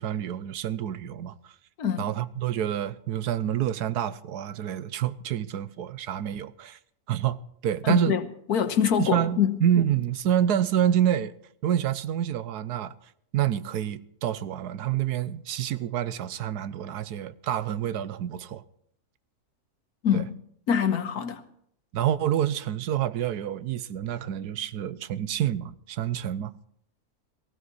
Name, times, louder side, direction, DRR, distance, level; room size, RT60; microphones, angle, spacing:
voice 1, 0.0-1.4 2.0-6.8 7.1-7.4 7.6-8.1 9.0-11.3 11.6-12.9 13.3-18.6 20.1-20.2 21.9-26.5, right 10 dB, 90° right, 1.3 m, -27 dB
voice 2, 7.8-8.2 8.5-9.6 20.0-20.3 20.7-21.4, left 8 dB, 75° left, 1.6 m, -24 dB
18.0 x 16.0 x 4.1 m
omnidirectional pair, 1.6 m